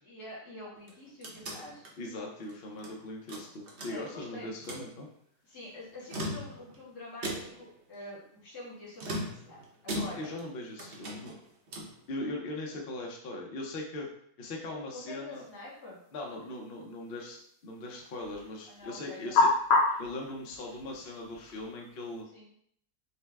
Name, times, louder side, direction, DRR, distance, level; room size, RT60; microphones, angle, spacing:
voice 1, 0.0-1.9 3.9-4.5 5.5-10.3 14.9-16.0 18.7-19.5 22.3-22.5, left 1 dB, 85° left, -6 dB, 2.3 m, -46 dB
sound 1, 0.8-2.9 3.3-4.3 4.5-4.9 5.9-6.8 7.2-7.7 9.0-10.5 10.8-12.0, equal, 50° right, 1.0 m, -39 dB
voice 2, 2.0-5.1 9.9-11.3 12.1-14.1 14.4-15.4 16.1-19.5 20.0-22.3, left 2 dB, 50° left, 0 dB, 0.8 m, -40 dB
sound 2, 15.3-22.2, left 3 dB, 70° left, 1.3 m, -32 dB
5.5 x 2.1 x 3.4 m, 0.66 s
omnidirectional pair, 1.6 m